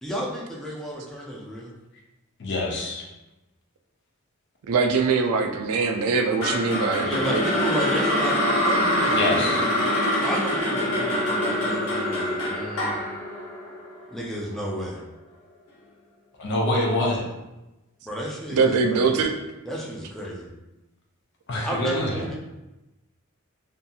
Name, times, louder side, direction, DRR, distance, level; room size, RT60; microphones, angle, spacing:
voice 1, 0.0-1.7 7.0-13.0 14.1-15.0 18.1-19.3 19.6-20.5 21.6-22.4, equal, ahead, -4 dB, 0.4 m, -32 dB
voice 2, 2.4-3.0 9.1-9.6 16.4-17.3 21.5-22.2, left 1 dB, 50° left, -1 dB, 0.5 m, -25 dB
voice 3, 4.7-7.4 18.5-19.3, right 4 dB, 75° right, 5 dB, 0.3 m, -22 dB
sound 1, 6.4-14.6, left 1 dB, 80° left, 0.8 m, -25 dB
2.7 x 2.6 x 2.3 m, 1.0 s
head